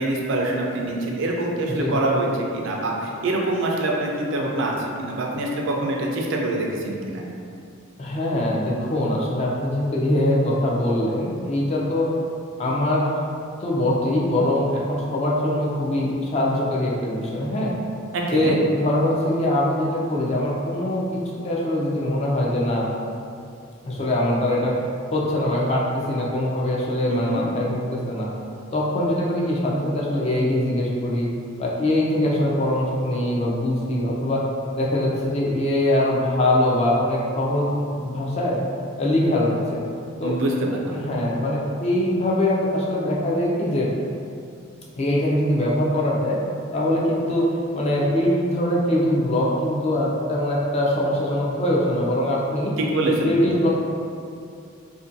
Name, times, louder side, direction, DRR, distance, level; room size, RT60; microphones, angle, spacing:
voice 1, 0.0-2.3 2.5-7.2 18.1-18.6 27.1-27.4 40.2-41.0 52.8-53.3, right 2 dB, 65° right, -1 dB, 0.4 m, -25 dB
voice 2, 8.0-12.2 12.6-13.2 13.6-17.7 18.3-21.2 21.4-22.9 23.9-24.8 25.1-28.3 28.7-31.3 31.6-34.4 34.8-38.6 39.0-39.8 40.2-40.4 40.9-43.9 45.0-46.4 46.7-52.7 53.0-53.7, left 1 dB, 30° left, -4 dB, 0.3 m, -22 dB
2.5 x 2.1 x 2.6 m, 2.4 s
head